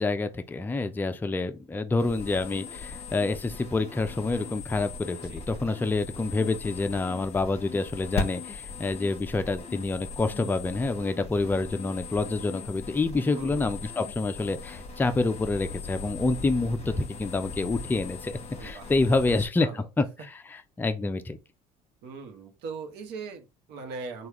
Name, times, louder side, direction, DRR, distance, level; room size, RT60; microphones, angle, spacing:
voice 1, 0.0-21.4, left 3 dB, 10° left, 0.4 m, -28 dB
sound 1, 2.0-19.5, left 4 dB, 35° left, 1.0 m, -39 dB
voice 2, 18.6-18.9 19.3-19.9 22.0-24.3, right 4 dB, 70° right, 1.0 m, -40 dB
3.4 x 2.4 x 2.9 m
supercardioid pair, 85°, 18 cm